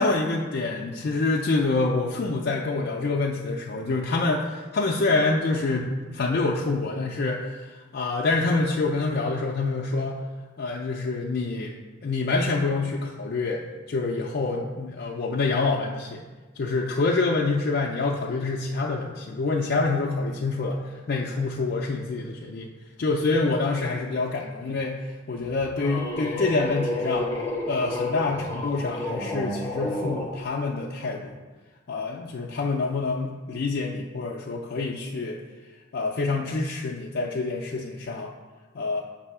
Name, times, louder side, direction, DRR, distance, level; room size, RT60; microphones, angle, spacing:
voice 1, 0.0-10.2 10.6-11.8 12.0-13.6 13.9-16.2 16.6-22.7 23.0-27.3 27.7-31.3 31.9-35.4 35.9-38.3 38.7-39.0, left 3 dB, 55° left, -2 dB, 0.4 m, -26 dB
sound 1, 25.4-30.3, left 1 dB, 15° left, 0.7 m, -30 dB
6.6 x 2.7 x 5.4 m, 1.3 s
head